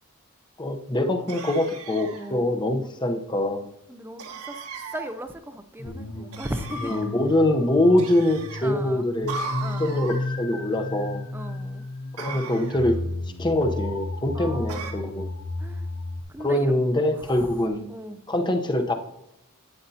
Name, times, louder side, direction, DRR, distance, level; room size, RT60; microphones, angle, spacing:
voice 1, 0.6-3.7 5.8-5.9 6.8-9.3 9.8-11.2 12.1-13.0 13.4-15.3 16.4-17.8 18.3-18.9, left 1 dB, 20° left, 5 dB, 0.8 m, -24 dB
sound 1, 1.3-2.3 4.2-5.1 6.3-7.1 8.0-8.6 9.3-10.2 12.2-13.0 14.7-14.9, right 4 dB, 90° right, 1.5 m, -37 dB
voice 2, 2.1-2.9 3.9-4.6 4.9-7.0 8.6-9.1 9.6-10.1 11.3-11.9 14.3-14.9 15.6-15.9 16.3-16.7 17.4-17.6 17.9-18.2, right 1 dB, 10° right, 9 dB, 0.5 m, -37 dB
sound 2, 5.9-16.2, left 2 dB, 60° left, 0.9 m, -33 dB
11.5 x 8.6 x 2.8 m, 0.86 s
head